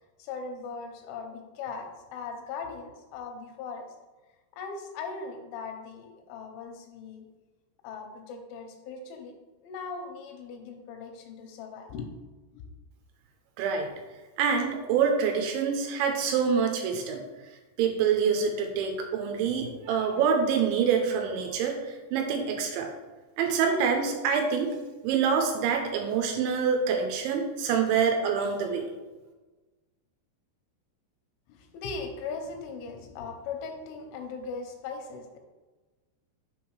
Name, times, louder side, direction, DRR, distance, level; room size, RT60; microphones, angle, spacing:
voice 1, 0.2-3.9 4.5-7.3 7.8-9.3 9.6-12.1 12.5-12.6 31.5-35.4, left 4 dB, 85° left, 4 dB, 3.2 m, -39 dB
voice 2, 13.6-13.9 14.4-17.2 17.8-22.9 23.4-24.7 25.0-28.8, right 6 dB, 80° right, 3 dB, 3.0 m, -26 dB
7.2 x 3.5 x 4.7 m, 1.2 s
omnidirectional pair, 5.5 m